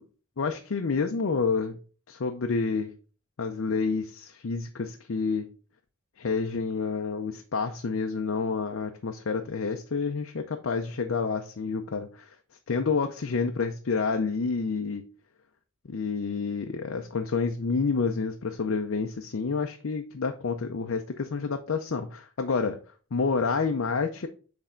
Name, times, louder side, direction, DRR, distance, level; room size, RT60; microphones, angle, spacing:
voice 1, 0.4-1.8 2.1-2.9 3.4-5.5 6.2-12.3 12.7-15.0 15.9-22.8 23.1-24.3, left 4 dB, 70° left, 0.5 m, -29 dB
8.3 x 3.5 x 3.8 m
head